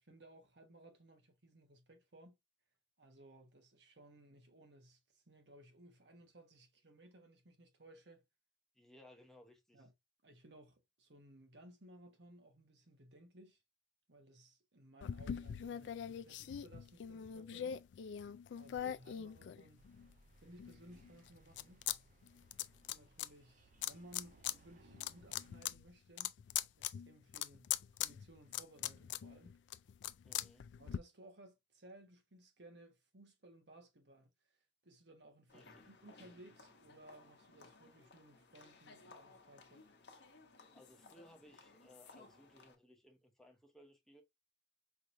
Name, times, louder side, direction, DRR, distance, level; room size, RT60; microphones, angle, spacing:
voice 1, 0.0-2.4 3.0-8.2 9.7-9.9 10.2-13.6 14.1-17.8 18.5-19.9 20.4-21.8 22.9-26.3 26.8-29.6 30.8-34.3 34.8-39.9, right 1 dB, 75° right, 1.3 m, -60 dB
voice 2, 8.7-9.9 30.2-30.7 35.5-35.9 40.7-44.2, left 1 dB, ahead, 0.8 m, -62 dB
sound 1, 15.0-20.1 20.6-22.0 22.2-23.3 23.8-24.6 24.9-31.0, left 10 dB, 85° left, 0.3 m, -42 dB
sound 2, 19.8-25.6, right 2 dB, 45° right, 0.5 m, -66 dB
sound 3, 35.5-42.8, left 3 dB, 70° left, 0.9 m, -60 dB
5.0 x 3.0 x 2.5 m
head